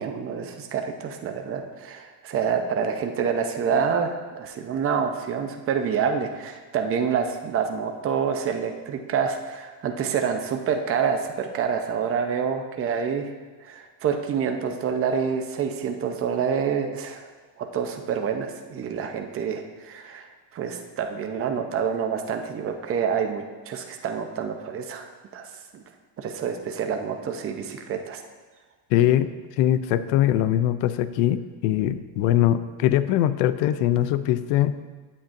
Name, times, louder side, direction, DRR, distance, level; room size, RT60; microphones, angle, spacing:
voice 1, 0.0-13.3 13.6-17.3 17.6-25.1 25.3-25.8 26.2-28.2, right 6 dB, 30° right, 5 dB, 0.7 m, -27 dB
voice 2, 28.9-29.3 29.6-34.7, left 12 dB, 80° left, 13 dB, 0.6 m, -22 dB
8.7 x 8.6 x 2.6 m, 1.4 s
cardioid pair, 135°, 44 cm